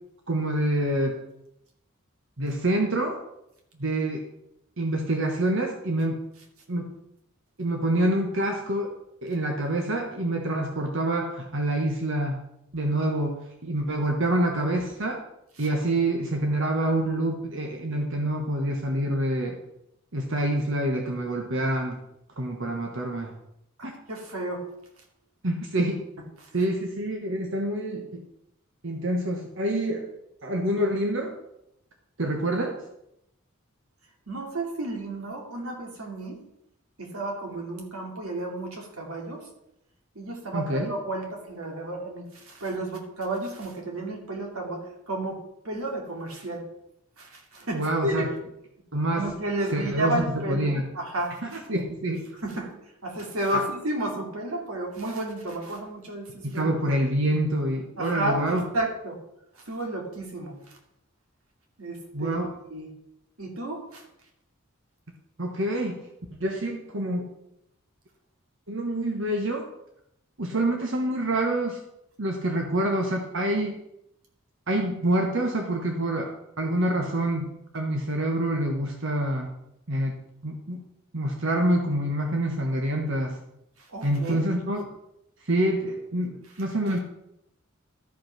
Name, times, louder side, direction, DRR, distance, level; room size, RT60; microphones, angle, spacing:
voice 1, 0.3-1.1 2.4-3.2 3.8-4.2 4.8-6.2 6.7-6.9 7.6-8.9 9.2-12.4 12.7-15.2 15.6-19.6 20.1-22.0 22.4-23.3 23.8-23.9 25.4-26.0 26.5-28.2 28.8-30.1 30.4-31.4 32.2-32.8 40.5-41.0 47.7-48.3 48.9-49.3 49.7-50.8 51.5-52.3 53.5-53.6 56.4-58.6 62.1-62.5 65.4-66.1 66.4-67.3 68.7-69.7 70.4-71.8 72.2-73.8 74.7-79.5 79.9-80.1 80.4-80.8 81.1-83.4 84.0-84.8 85.4-87.0, right 1 dB, 60° right, 2 dB, 1.3 m, -26 dB
voice 2, 23.8-24.7 26.4-26.5 34.3-36.4 37.0-39.4 40.1-46.6 47.2-48.3 49.1-51.4 52.4-52.7 53.0-56.7 58.0-59.2 59.7-60.8 61.8-62.4 62.7-62.9 63.4-64.0 83.9-84.4, right 1 dB, 90° right, 1 dB, 2.6 m, -32 dB
13.0 x 5.5 x 5.8 m, 0.81 s
head